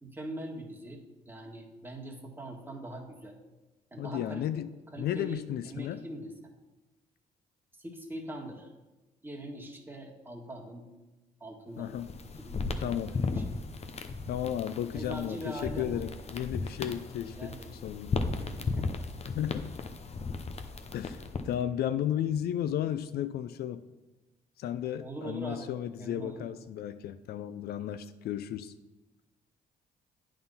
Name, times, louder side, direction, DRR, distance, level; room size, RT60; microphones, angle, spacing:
voice 1, 0.0-1.0 1.3-3.3 3.9-4.4 4.9-6.3 7.8-8.7 9.2-10.9 11.4-11.9 12.4-13.4 14.9-16.0 17.2-17.7 18.4-19.0 25.0-25.7 26.0-26.5, right 1 dB, 10° right, 0 dB, 1.8 m, -42 dB
voice 2, 4.0-4.7 5.0-6.0 11.8-12.1 12.8-13.2 14.3-18.2 19.4-19.7 20.9-23.8 24.6-28.7, left 10 dB, 70° left, 12 dB, 0.4 m, -34 dB
sound 1, 11.8-21.6, left 3 dB, 40° left, 0.8 m, -36 dB
8.7 x 3.8 x 5.5 m, 1.1 s
supercardioid pair, 60°, 17 cm